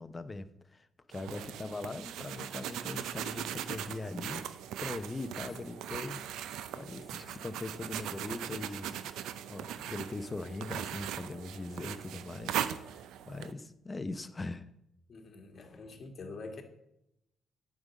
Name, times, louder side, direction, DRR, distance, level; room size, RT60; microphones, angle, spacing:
voice 1, 0.0-4.5 4.8-9.0 9.5-14.7, left 2 dB, 25° left, 12 dB, 0.7 m, -41 dB
sound 1, 1.1-13.5, right 10 dB, 85° right, 0.5 m, -39 dB
voice 2, 15.1-16.6, left 3 dB, 45° left, 4 dB, 1.8 m, -46 dB
9.4 x 5.3 x 7.4 m, 0.82 s
cardioid pair, 90°, 0 cm